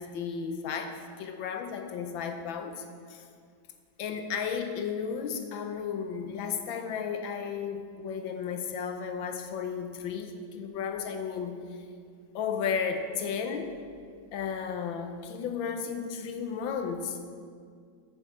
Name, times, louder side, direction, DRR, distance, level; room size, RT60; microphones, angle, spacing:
voice 1, 0.0-3.2 4.0-11.6 12.3-13.7 14.3-17.3, left 6 dB, 80° left, 6 dB, 1.6 m, -34 dB
8.0 x 7.1 x 7.4 m, 2.1 s
omnidirectional pair, 2.1 m